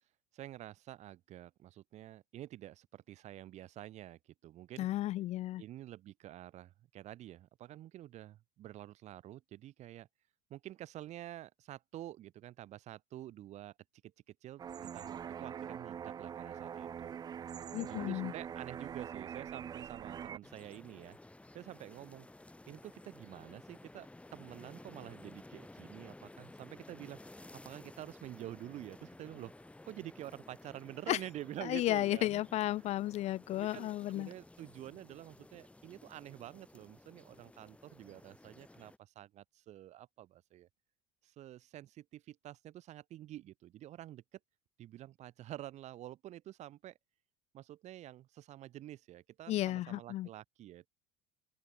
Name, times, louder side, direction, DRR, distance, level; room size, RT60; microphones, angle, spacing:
voice 1, 0.3-4.9 5.6-10.1 10.5-13.7 14.0-17.2 17.9-21.2 21.5-22.3 22.7-29.5 29.9-32.4 33.5-40.7 41.2-44.4 44.8-47.0 47.5-50.9, right 13 dB, 50° right, 1.4 m, -48 dB
voice 2, 4.8-5.6 17.7-18.3 31.1-31.2 31.6-34.3 49.5-50.3, left 15 dB, 50° left, 0.5 m, -33 dB
sound 1, 14.6-20.4, right 8 dB, 30° right, 0.4 m, -43 dB
sound 2, 20.4-39.0, left 2 dB, 10° left, 2.4 m, -55 dB
open air
supercardioid pair, 90°, 14 cm